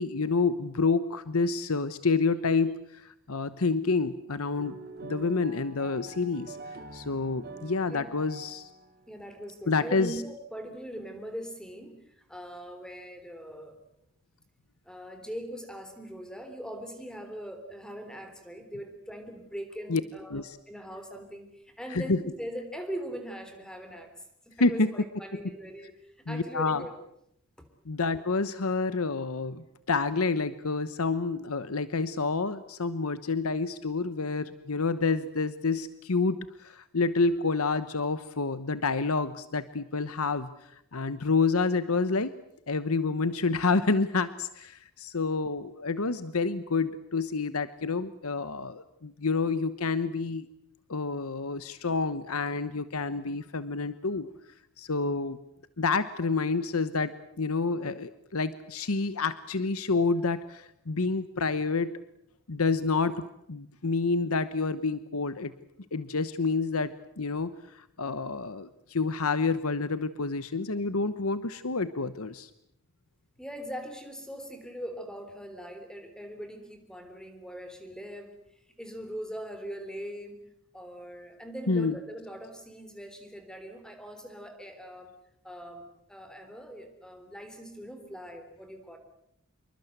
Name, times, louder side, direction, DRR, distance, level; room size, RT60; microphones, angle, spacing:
voice 1, 0.0-4.8 5.0-6.6 6.9-8.7 9.7-10.1 19.9-20.0 20.3-20.6 21.9-22.2 24.6-24.9 26.3-26.8 27.9-40.5 40.9-42.3 42.7-50.5 50.9-54.3 54.8-55.4 55.8-57.1 57.4-62.0 62.5-65.5 65.9-72.5 81.7-82.0, left 4 dB, 85° left, 13 dB, 1.1 m, -28 dB
sound 1, 4.6-9.2, right 3 dB, 45° right, 2.2 m, -45 dB
voice 2, 9.1-13.7 14.9-24.1 24.5-26.9 27.6-27.7 73.4-78.4 78.8-80.4 80.7-85.1 85.4-89.0, equal, 5° left, 7 dB, 3.6 m, -41 dB
27.0 x 23.0 x 8.1 m, 0.76 s
head